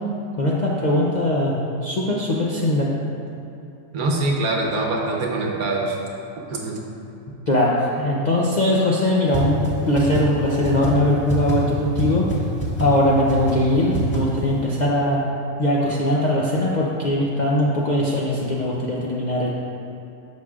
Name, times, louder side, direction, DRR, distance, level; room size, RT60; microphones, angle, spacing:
voice 1, 0.4-2.9 7.5-12.3 12.8-15.2 15.6-19.5, left 1 dB, 50° left, -5 dB, 0.5 m, -21 dB
voice 2, 3.9-6.0 6.5-6.8, right 2 dB, 75° right, -1 dB, 1.4 m, -23 dB
sound 1, 9.3-9.4 9.6-9.7 10.0-10.2 10.6-10.9 11.3-11.5 12.0-12.1 12.3-12.4 12.6-12.9 13.3-13.5 13.9-14.2, right 2 dB, 10° left, 1.3 m, -24 dB
10.5 x 6.4 x 2.4 m, 2.8 s
omnidirectional pair, 1.6 m